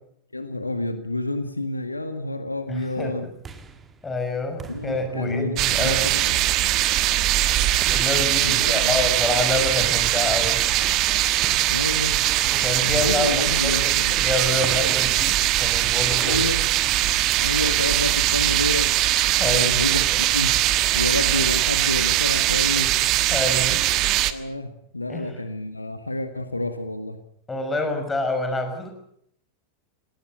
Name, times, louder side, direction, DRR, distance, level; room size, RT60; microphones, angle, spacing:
voice 1, 0.3-3.3 4.7-6.5 8.4-9.1 11.7-12.2 12.8-14.2 16.2-16.6 17.4-19.0 19.4-20.6 20.9-22.9 24.3-27.2, left 2 dB, 85° left, 9 dB, 1.7 m, -29 dB
voice 2, 2.7-3.1 4.0-6.0 7.9-10.6 12.5-15.3 15.6-16.4 19.4-19.7 20.1-20.2 23.3-23.8 25.1-25.3 27.5-28.9, left 2 dB, 10° left, 5 dB, 6.1 m, -27 dB
sound 1, 3.1-18.3, right 5 dB, 20° right, 2.3 m, -43 dB
sound 2, 5.6-24.3, right 14 dB, 40° right, 1.4 m, -21 dB
20.5 x 18.0 x 9.2 m, 0.70 s
figure-of-eight pair, 90°, 0 cm